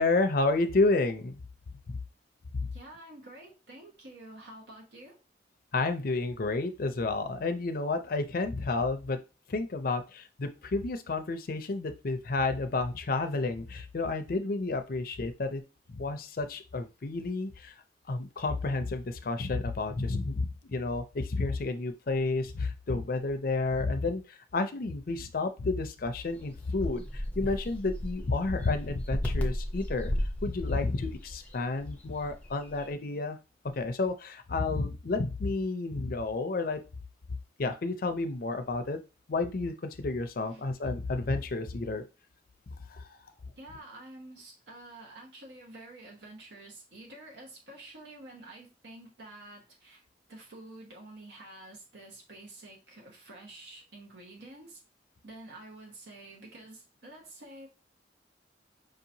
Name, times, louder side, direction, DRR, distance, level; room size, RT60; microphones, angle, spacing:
voice 1, 0.0-1.4 2.6-2.7 5.7-9.2 9.5-15.6 15.9-17.7 18.1-33.4 33.7-36.8 37.6-39.0 39.3-42.0 42.9-43.2, left 3 dB, 50° left, 0.5 m, -31 dB
voice 2, 2.7-5.2 25.2-25.3 40.4-40.6 43.5-50.0 50.3-54.8 55.2-57.7, right 1 dB, 70° right, 0.9 m, -49 dB
sound 1, 26.1-32.9, equal, 5° left, 0.6 m, -36 dB
5.2 x 2.9 x 2.7 m
head